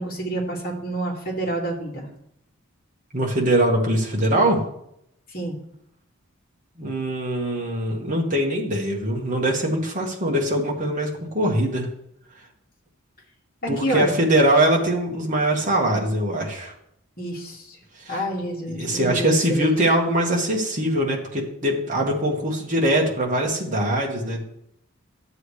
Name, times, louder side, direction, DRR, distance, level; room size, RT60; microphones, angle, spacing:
voice 1, 0.0-2.1 5.3-5.6 13.6-14.2 17.2-17.8 18.1-19.8, right 1 dB, 40° left, -3 dB, 2.3 m, -28 dB
voice 2, 3.1-4.7 6.8-11.9 13.7-16.7 18.0-18.2 18.7-24.4, right 1 dB, 35° right, -1 dB, 1.7 m, -22 dB
11.5 x 7.8 x 3.3 m, 0.74 s
head